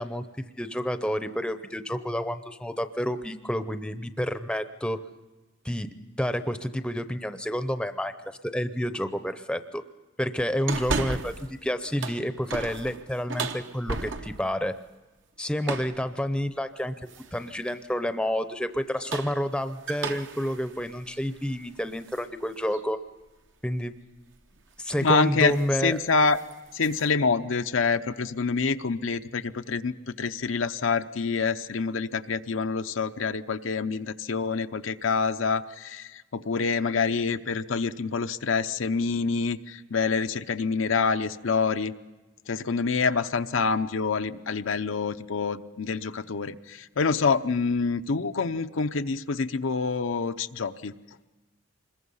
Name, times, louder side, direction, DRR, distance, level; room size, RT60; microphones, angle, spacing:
voice 1, 0.0-5.0 5.6-5.9 6.2-8.1 8.4-9.8 10.2-11.3 11.6-14.7 15.4-16.9 17.3-23.0 23.6-23.9 24.8-26.0, equal, 5° left, 10 dB, 0.7 m, -29 dB
sound 1, 10.7-11.5 11.9-14.5 15.6-16.0 17.1-17.5 18.8-22.3 22.7-22.8 24.4-24.6 24.9-25.2 25.5-25.7 26.1-27.1, right 4 dB, 65° right, 1.1 m, -35 dB
voice 2, 25.0-25.6 25.8-26.4 26.7-41.9 42.5-50.9, left 4 dB, 80° left, 9 dB, 0.7 m, -26 dB
25.5 x 21.5 x 5.5 m, 1.2 s
head